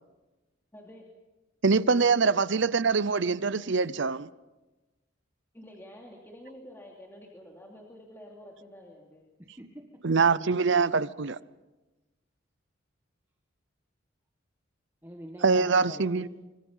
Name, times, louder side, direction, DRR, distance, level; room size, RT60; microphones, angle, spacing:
voice 1, 0.7-1.0 5.5-9.2, equal, 10° left, 2.8 m, -48 dB
voice 2, 1.6-4.3 10.0-11.4 15.4-16.3, right 4 dB, 60° right, 0.7 m, -24 dB
voice 3, 9.4-10.1 15.0-16.3, equal, 10° right, 1.6 m, -45 dB
25.5 x 24.5 x 5.6 m
head